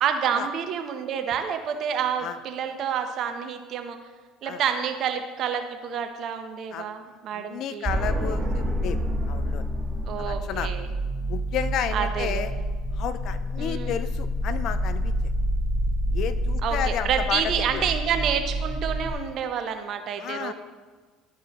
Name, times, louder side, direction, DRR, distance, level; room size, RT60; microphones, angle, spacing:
voice 1, 0.0-4.0 4.4-7.9 10.1-10.9 11.9-12.5 13.6-14.0 16.6-20.5, right 8 dB, 55° right, 7 dB, 0.8 m, -28 dB
voice 2, 7.3-9.0 9.3-9.7 10.2-10.7 11.3-12.5 12.9-15.1 16.1-17.9 20.2-20.5, left 9 dB, 60° left, 13 dB, 0.4 m, -32 dB
sound 1, 7.8-19.1, equal, 20° right, 1.0 m, -28 dB
12.0 x 4.7 x 3.0 m, 1.4 s
hypercardioid pair, 75°, 0 cm